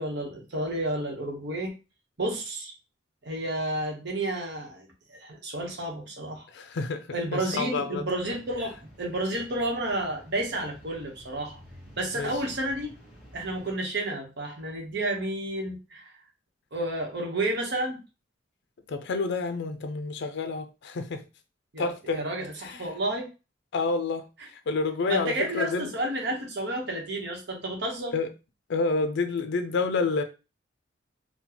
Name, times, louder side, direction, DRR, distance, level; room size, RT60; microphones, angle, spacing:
voice 1, 0.0-1.7 2.2-2.7 3.2-6.5 7.1-11.6 12.0-12.9 13.3-16.2 16.7-18.0 21.7-23.3 24.4-24.5 25.1-28.1, right 1 dB, 65° right, 1.0 m, -31 dB
voice 2, 6.5-7.1 7.3-8.0 12.2-12.3 18.9-21.2 21.8-22.3 22.6-22.8 23.7-25.9 28.1-28.3 28.7-30.2, left 4 dB, 65° left, 0.4 m, -29 dB
sound 1, 8.2-13.8, equal, 5° right, 1.2 m, -51 dB
3.8 x 2.2 x 2.9 m
head